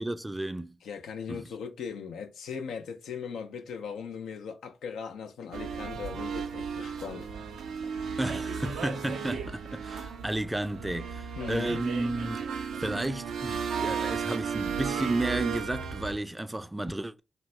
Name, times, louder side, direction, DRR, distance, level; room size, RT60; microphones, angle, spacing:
voice 1, 0.0-0.8 1.3-1.4 8.2-17.2, right 1 dB, 15° right, 0.3 m, -32 dB
voice 2, 0.8-7.3 11.3-11.8, left 6 dB, 90° left, 0.4 m, -39 dB
sound 1, 5.5-16.2, right 6 dB, 90° right, 0.4 m, -34 dB
2.8 x 2.0 x 3.1 m
supercardioid pair, 45°, 0 cm